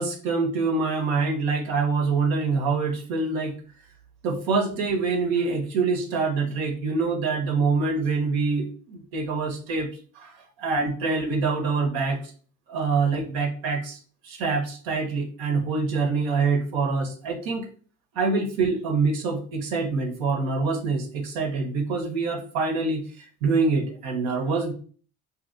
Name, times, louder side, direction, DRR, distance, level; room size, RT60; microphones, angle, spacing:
voice 1, 0.0-3.5 4.2-9.9 10.2-12.2 12.7-14.0 14.2-17.7 18.1-24.7, right 4 dB, 75° right, 2 dB, 0.8 m, -25 dB
2.7 x 2.7 x 2.5 m, 0.42 s
supercardioid pair, 70°, 46 cm